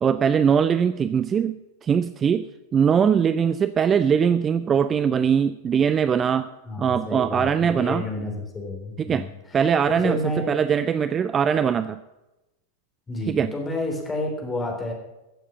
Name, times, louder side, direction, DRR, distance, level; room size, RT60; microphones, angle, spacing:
voice 1, 0.0-1.6 1.8-6.5 6.8-8.1 9.0-9.3 9.5-10.2 10.5-12.0 13.3-13.5, right 7 dB, 25° right, 14 dB, 0.4 m, -21 dB
voice 2, 6.6-9.3 10.0-10.6 13.1-14.9, left 1 dB, 15° left, 1 dB, 3.5 m, -30 dB
15.0 x 7.4 x 7.2 m, 0.98 s
figure-of-eight pair, 90°, 0 cm